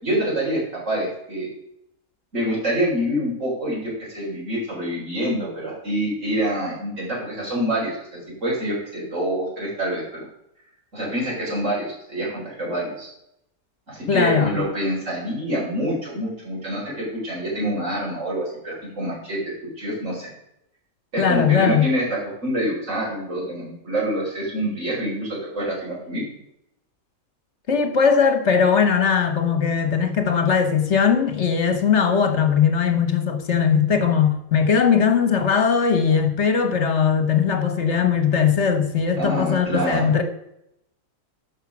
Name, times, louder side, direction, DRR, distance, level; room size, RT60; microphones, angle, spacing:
voice 1, 0.0-1.5 2.3-8.1 8.4-10.2 10.9-13.1 13.9-20.3 21.1-26.3 39.2-40.1, right 1 dB, 55° right, 4.3 m, -26 dB
voice 2, 14.1-14.6 21.2-21.9 27.7-40.2, left 6 dB, 50° left, 1.4 m, -19 dB
12.0 x 5.6 x 6.0 m
omnidirectional pair, 1.6 m